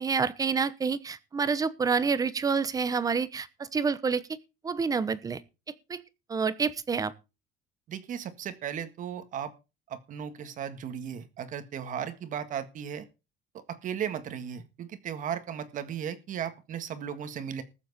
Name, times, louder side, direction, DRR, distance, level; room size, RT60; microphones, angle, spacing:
voice 1, 0.0-3.5 3.7-4.2 4.6-5.4 5.9-6.0 6.3-7.1, right 5 dB, 15° right, 0.8 m, -28 dB
voice 2, 7.9-9.5 9.9-13.1 13.7-17.6, right 8 dB, 40° right, 1.7 m, -36 dB
20.0 x 7.4 x 4.1 m
cardioid pair, 170°, 21 cm